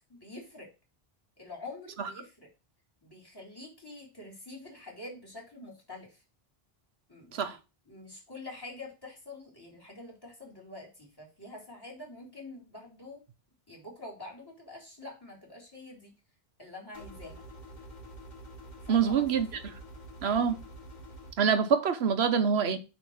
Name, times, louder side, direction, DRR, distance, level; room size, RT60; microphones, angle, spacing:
voice 1, 0.1-0.7 1.4-2.5 3.0-6.2 7.1-7.6 7.9-13.2 13.7-16.1 16.6-17.4 18.8-19.6, left 2 dB, 20° left, 3.4 m, -46 dB
sound 1, 16.9-21.3, right 1 dB, 45° left, 1.4 m, -47 dB
voice 2, 18.9-19.5 20.2-20.6 21.4-22.8, right 7 dB, 85° right, 1.1 m, -25 dB
8.8 x 3.1 x 6.3 m
omnidirectional pair, 1.0 m